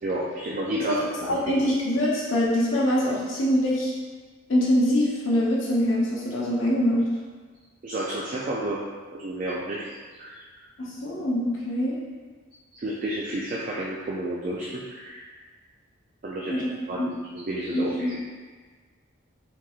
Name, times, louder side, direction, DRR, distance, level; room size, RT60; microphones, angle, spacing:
voice 1, 0.0-1.0 1.3-1.5 7.8-8.8 9.1-10.4 12.7-15.2 16.2-16.6 16.9-17.0 17.3-18.2, right 1 dB, 40° right, -4 dB, 0.3 m, -31 dB
voice 2, 0.9-3.9 4.5-7.0 10.8-12.0 16.4-16.6 17.0-17.1 17.7-18.1, equal, 70° left, -6 dB, 0.7 m, -24 dB
3.6 x 2.9 x 2.3 m, 1.5 s
head